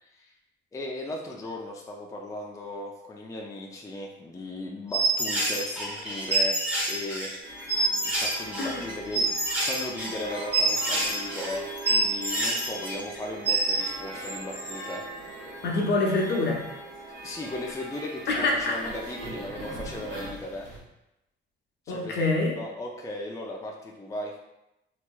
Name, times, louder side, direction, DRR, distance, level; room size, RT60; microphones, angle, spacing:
voice 1, 0.0-0.3 0.7-6.6 6.9-7.3 8.0-9.3 9.7-15.0 17.2-20.7 21.9-22.3 22.6-24.3, left 1 dB, 15° left, 0 dB, 0.4 m, -37 dB
sound 1, 4.9-13.9 14.2-15.0, right 2 dB, 5° right, 1.1 m, -27 dB
sound 2, 7.4-20.8, right 1 dB, 65° right, 1.2 m, -41 dB
voice 2, 15.6-16.6 18.3-18.8 21.9-22.5, left 2 dB, 60° left, -1 dB, 0.8 m, -25 dB
3.2 x 3.0 x 2.2 m, 0.89 s
cardioid pair, 90°, 20 cm